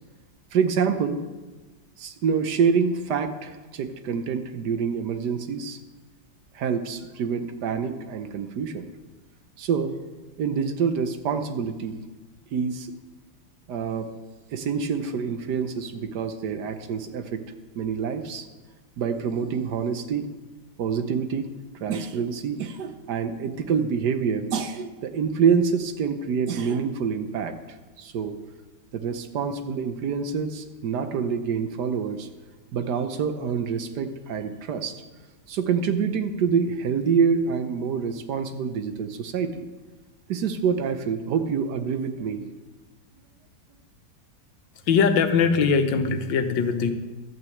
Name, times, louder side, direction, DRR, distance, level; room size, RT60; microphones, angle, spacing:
voice 1, 0.5-1.2 2.0-5.8 6.5-8.9 9.6-10.0 10.4-12.0 12.5-12.9 13.7-14.1 14.5-17.4 17.7-18.5 19.0-20.3 20.8-21.5 21.8-28.3 28.9-32.3 32.7-35.0 35.5-39.7 40.3-42.4, right 6 dB, 65° right, 9 dB, 1.3 m, -26 dB
voice 2, 44.9-46.9, left 5 dB, 85° left, 7 dB, 1.6 m, -21 dB
12.5 x 6.0 x 7.8 m, 1.2 s
omnidirectional pair, 2.0 m